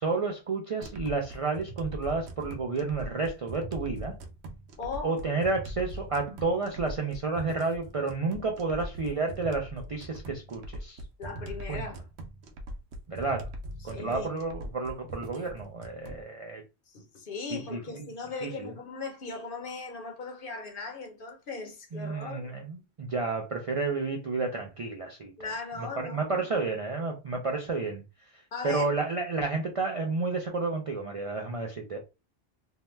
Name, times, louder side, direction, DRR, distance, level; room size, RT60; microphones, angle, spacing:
voice 1, 0.0-4.1 5.0-11.0 11.7-11.8 13.1-13.5 13.8-16.6 17.5-17.8 18.4-18.7 21.9-25.5 26.1-28.0 28.6-32.0, right 3 dB, 50° right, 0.4 m, -31 dB
sound 1, 0.8-16.2, right 1 dB, 90° right, 0.9 m, -41 dB
voice 2, 4.8-5.2 11.2-12.1 13.8-14.3 16.9-22.5 25.4-26.4 28.5-28.9, left 4 dB, 55° left, 0.9 m, -38 dB
2.7 x 2.2 x 3.1 m
omnidirectional pair, 1.1 m